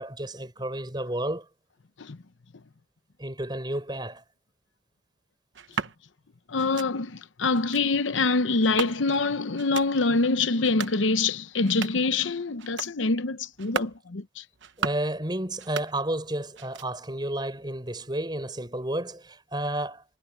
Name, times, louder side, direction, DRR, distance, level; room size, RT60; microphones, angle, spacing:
voice 1, 0.0-1.4 3.2-4.2 14.8-20.0, right 1 dB, 25° right, 5.0 m, -31 dB
sound 1, 5.5-6.0 6.6-6.9 7.5-7.8 8.6-9.2 9.6-9.9 10.5-11.0 11.5-12.1 12.6-12.9 13.5-14.0 14.5-15.1 15.5-16.3 16.5-17.1, right 5 dB, 80° right, 1.0 m, -36 dB
voice 2, 6.5-14.4, left 3 dB, 90° left, 0.9 m, -25 dB
head